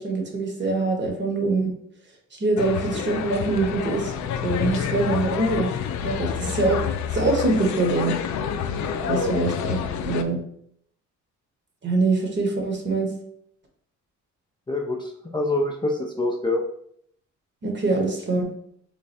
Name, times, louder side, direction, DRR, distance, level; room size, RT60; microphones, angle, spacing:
voice 1, 0.0-1.7 2.3-4.1 4.4-5.7 6.0-6.8 7.1-8.2 9.1-10.4 11.8-13.1 17.6-18.5, right 3 dB, 40° right, 2 dB, 1.0 m, -24 dB
sound 1, 2.6-10.2, left 8 dB, 70° left, 0.4 m, -28 dB
voice 2, 14.7-16.6, left 2 dB, 15° left, 0 dB, 0.4 m, -26 dB
3.2 x 2.2 x 4.2 m, 0.68 s
cardioid pair, 90°, 30 cm